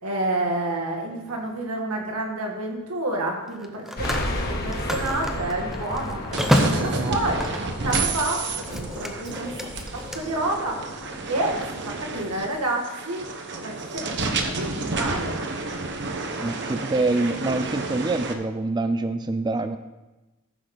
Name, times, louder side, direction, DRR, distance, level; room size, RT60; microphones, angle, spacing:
voice 1, 0.0-9.6 9.9-11.0 11.3-13.3 13.6-15.4, right 2 dB, 85° right, 0 dB, 2.3 m, -29 dB
Telephone, 1.3-1.5 3.5-8.3 8.6-10.2, equal, ahead, 0.8 m, -28 dB
sound 1, 4.0-12.5, left 1 dB, 45° left, 2.0 m, -34 dB
sound 2, 6.3-18.3, right 3 dB, 55° right, 1.1 m, -30 dB
voice 2, 16.4-19.8, right 2 dB, 20° right, 10 dB, 0.4 m, -25 dB
14.5 x 6.9 x 4.0 m, 1.1 s
head